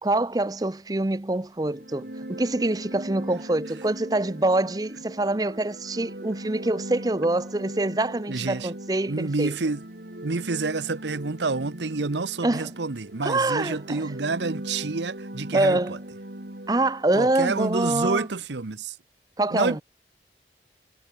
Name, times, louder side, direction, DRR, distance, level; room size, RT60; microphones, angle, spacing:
voice 1, 0.0-9.5 12.4-12.7 13.2-14.0 15.5-16.0 16.7-18.3 19.4-19.8, right 2 dB, 20° right, 0.6 m, -25 dB
sound 1, 1.6-17.3, right 1 dB, 60° right, 2.6 m, -40 dB
voice 2, 8.3-8.7 9.1-9.8 10.2-16.0 17.1-19.0 19.5-19.8, right 3 dB, 85° right, 0.9 m, -28 dB
head